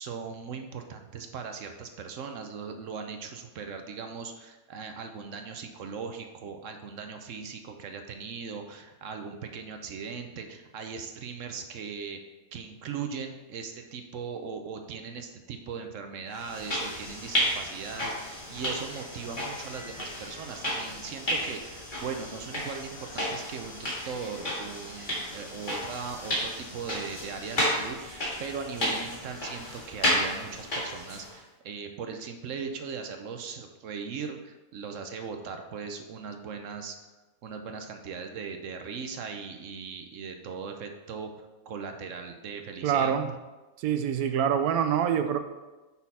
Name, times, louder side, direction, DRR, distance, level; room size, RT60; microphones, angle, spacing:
voice 1, 0.0-12.2 12.5-37.0 37.4-41.3 41.7-43.1, right 5 dB, 65° right, 5 dB, 0.9 m, -39 dB
sound 1, 16.4-31.3, equal, 35° left, 1.9 m, -32 dB
voice 2, 42.8-43.3 43.8-45.4, right 8 dB, 85° right, 8 dB, 1.1 m, -25 dB
6.2 x 5.6 x 4.2 m, 1.2 s
omnidirectional pair, 1.5 m